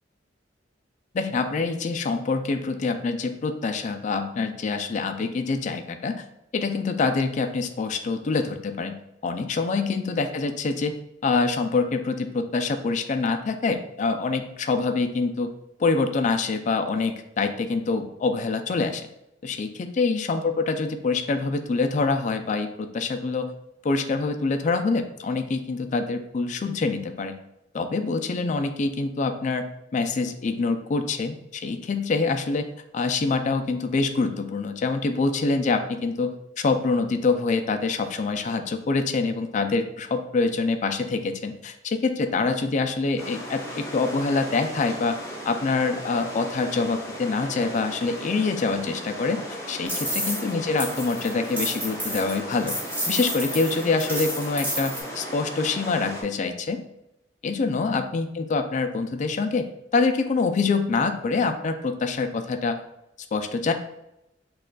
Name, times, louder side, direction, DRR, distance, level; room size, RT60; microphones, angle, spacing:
voice 1, 1.1-6.2 6.5-9.0 9.2-10.9 11.2-15.5 15.8-19.1 19.4-23.5 23.8-27.4 27.7-29.6 29.9-32.7 32.9-36.3 36.6-45.2 45.5-49.4 49.7-52.7 53.1-56.8 57.4-59.6 59.9-62.8 63.3-63.7, left 4 dB, 40° left, 7 dB, 0.3 m, -25 dB
sound 1, 43.2-56.2, equal, 15° left, 0.8 m, -37 dB
sound 2, 49.9-50.5 50.8-55.0, equal, 10° right, 1.3 m, -30 dB
6.3 x 2.4 x 2.2 m, 0.85 s
head